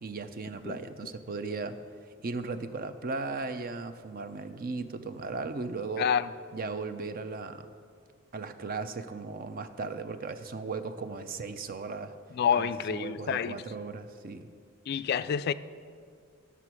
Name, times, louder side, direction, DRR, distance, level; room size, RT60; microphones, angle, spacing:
voice 1, 0.0-1.8 2.2-6.1 6.5-7.7 8.3-12.2 12.6-14.5, right 4 dB, 45° right, 10 dB, 0.5 m, -37 dB
voice 2, 6.0-6.3 12.3-13.6 14.9-15.5, left 7 dB, 50° left, 14 dB, 0.3 m, -28 dB
11.5 x 6.9 x 6.0 m, 2.2 s
head